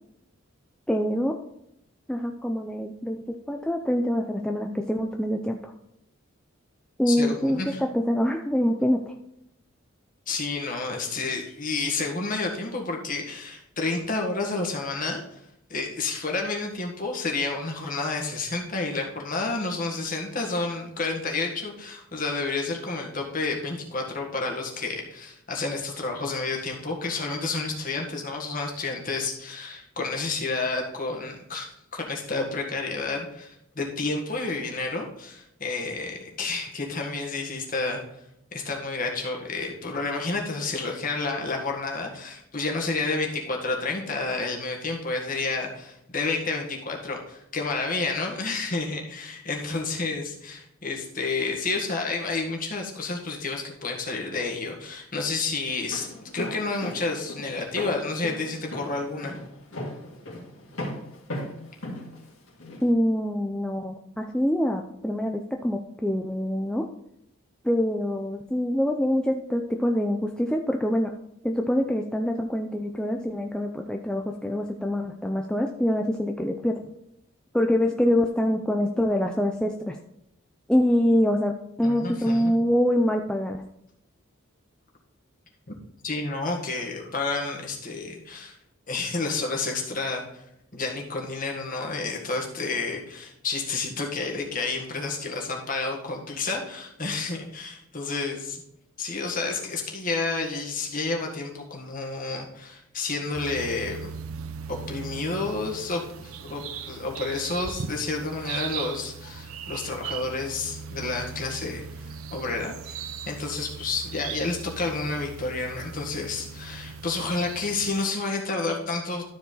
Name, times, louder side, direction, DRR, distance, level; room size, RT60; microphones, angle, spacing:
voice 1, 0.9-1.4 2.1-5.7 7.0-9.1 62.8-66.8 67.6-71.1 71.4-76.8 77.5-80.0 80.7-81.5 81.8-83.6, equal, 5° left, 2 dB, 0.4 m, -25 dB
voice 2, 7.1-7.8 10.3-15.4 15.7-38.0 38.5-56.1 56.3-59.3 81.8-82.5 85.7-85.8 86.0-88.5 88.9-90.4 90.7-98.6 99.0-104.1 104.7-113.0 113.3-119.2, left 3 dB, 40° left, 1 dB, 1.8 m, -30 dB
Walk footsteps, 55.7-62.9, left 1 dB, 80° left, 2.2 m, -36 dB
sound 1, 103.3-118.1, right 6 dB, 85° right, 0.6 m, -39 dB
13.0 x 4.7 x 4.0 m, 0.79 s
head